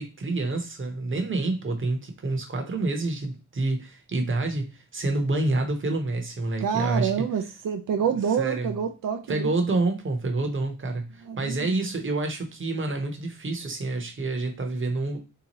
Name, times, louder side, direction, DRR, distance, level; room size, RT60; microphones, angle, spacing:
voice 1, 0.0-7.1 8.4-8.7 9.3-15.2, right 2 dB, 40° right, 0.9 m, -28 dB
voice 2, 6.6-9.5 11.3-11.8, right 7 dB, 85° right, 0.5 m, -27 dB
3.5 x 2.9 x 2.9 m
wide cardioid pair, 125°, 32 cm